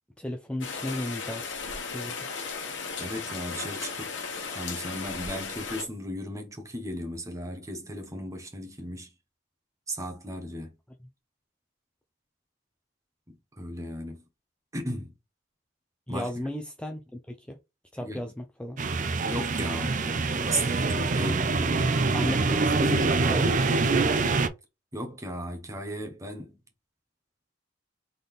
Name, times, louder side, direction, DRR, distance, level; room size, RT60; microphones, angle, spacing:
voice 1, 0.2-1.5 1.9-2.1 11.0-11.1 16.1-17.6 17.9-18.8 22.1-23.8, left 1 dB, 5° left, 0.5 m, -34 dB
Rain, 0.6-5.8, left 5 dB, 75° left, 1.2 m, -36 dB
voice 2, 3.0-4.2 4.5-9.1 9.9-10.7 13.6-14.2 14.7-15.1 16.1-16.3 18.0-18.2 19.3-22.0 22.2-22.3 24.9-26.6, equal, 15° right, 1.2 m, -35 dB
sound 1, 18.8-24.5, right 3 dB, 45° right, 0.5 m, -25 dB
3.9 x 3.9 x 3.3 m
head